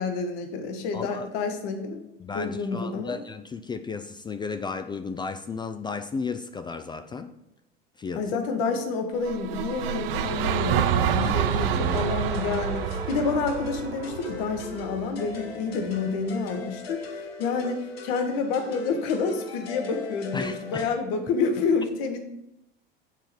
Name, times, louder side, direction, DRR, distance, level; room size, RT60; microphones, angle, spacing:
voice 1, 0.0-2.0 2.3-3.2 8.1-22.2, left 4 dB, 60° left, 6 dB, 1.3 m, -28 dB
voice 2, 0.9-1.3 2.2-7.3 8.0-8.2 11.2-12.0 20.3-20.9, left 5 dB, 15° left, 9 dB, 0.3 m, -34 dB
sound 1, 9.2-15.4, right 9 dB, 75° right, 0.5 m, -28 dB
sound 2, 11.8-21.0, left 3 dB, 85° left, 1.0 m, -39 dB
7.2 x 3.9 x 5.9 m, 0.84 s
hypercardioid pair, 80°, 29 cm